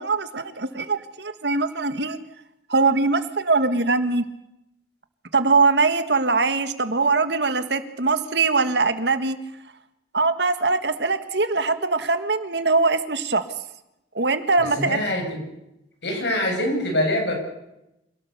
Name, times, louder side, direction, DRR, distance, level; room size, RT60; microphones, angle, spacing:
voice 1, 0.0-2.2 2.7-4.2 5.3-9.4 10.1-13.5 14.2-15.0, right 3 dB, 70° right, 10 dB, 1.7 m, -22 dB
voice 2, 14.8-15.4 16.0-17.3, left 1 dB, 70° left, 2 dB, 8.0 m, -24 dB
27.0 x 18.0 x 6.9 m, 0.87 s
head